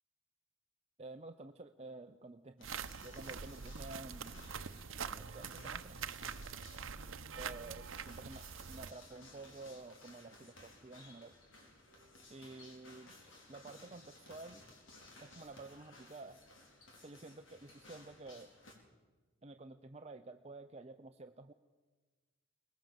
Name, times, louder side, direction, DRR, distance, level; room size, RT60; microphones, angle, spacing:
voice 1, 1.0-2.7 3.0-4.5 5.1-6.0 7.3-11.4 12.3-13.1 13.5-14.6 15.2-16.4 17.0-18.5 19.4-21.5, right 2 dB, 35° right, 7 dB, 0.6 m, -51 dB
sound 1, 2.6-18.7, left 2 dB, 75° left, 4.6 m, -59 dB
sound 2, 2.6-8.9, right 6 dB, 85° right, 0.8 m, -45 dB
22.5 x 20.0 x 7.7 m, 1.3 s
head